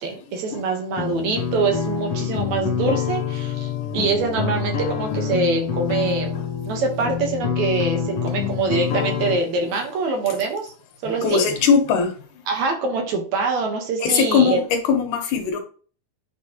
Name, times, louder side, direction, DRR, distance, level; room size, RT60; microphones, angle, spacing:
voice 1, 0.0-10.7 11.0-11.4 12.5-14.6, right 4 dB, 70° right, 2.5 m, -24 dB
sound 1, 1.0-9.4, left 7 dB, 65° left, 1.5 m, -26 dB
voice 2, 11.2-12.1 14.0-15.6, left 6 dB, 85° left, 2.7 m, -20 dB
9.2 x 4.5 x 2.9 m
omnidirectional pair, 3.5 m